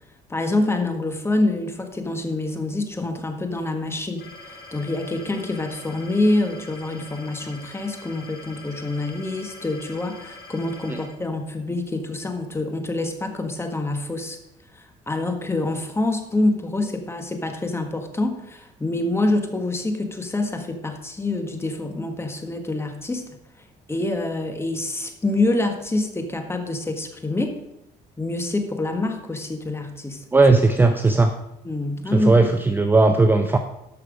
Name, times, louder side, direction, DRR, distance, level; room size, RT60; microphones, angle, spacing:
voice 1, 0.3-14.4 14.7-23.3 23.9-27.6 28.2-30.2 31.6-32.4, left 2 dB, 15° left, 5 dB, 1.5 m, -26 dB
sound 1, 4.2-11.0, left 2 dB, 60° left, 2.6 m, -43 dB
voice 2, 30.3-31.3 32.1-33.6, right 3 dB, 10° right, 6 dB, 0.6 m, -17 dB
12.0 x 6.0 x 5.1 m, 0.84 s
cardioid pair, 110°, 17 cm